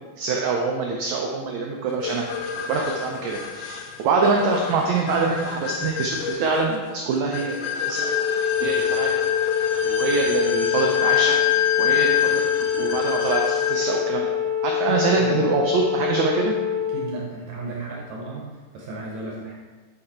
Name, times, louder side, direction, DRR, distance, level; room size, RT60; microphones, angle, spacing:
voice 1, 0.2-8.1 8.3-9.1 9.8-12.4 12.7-14.3 14.6-16.5, right 4 dB, 85° right, 0 dB, 1.6 m, -25 dB
sound 1, 2.0-14.0, left 9 dB, 80° left, 1.9 m, -27 dB
Wind instrument woodwind instrument, 7.9-17.1, left 8 dB, 30° left, 0.6 m, -25 dB
voice 2, 14.9-15.5 16.9-19.6, right 2 dB, 65° right, -2 dB, 2.0 m, -34 dB
9.0 x 5.3 x 4.3 m, 1.4 s
omnidirectional pair, 4.2 m